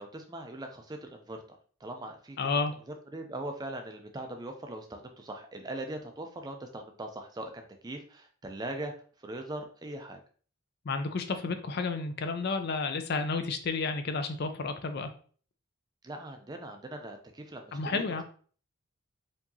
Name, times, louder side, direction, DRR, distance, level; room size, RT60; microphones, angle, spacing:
voice 1, 0.0-1.4 1.8-2.4 3.1-8.9 9.2-10.2 16.0-18.0, right 1 dB, 20° right, 5 dB, 0.4 m, -40 dB
voice 2, 2.4-2.7 10.9-15.1 17.7-18.2, left 4 dB, 45° left, 8 dB, 0.4 m, -31 dB
4.6 x 2.7 x 2.7 m, 0.44 s
head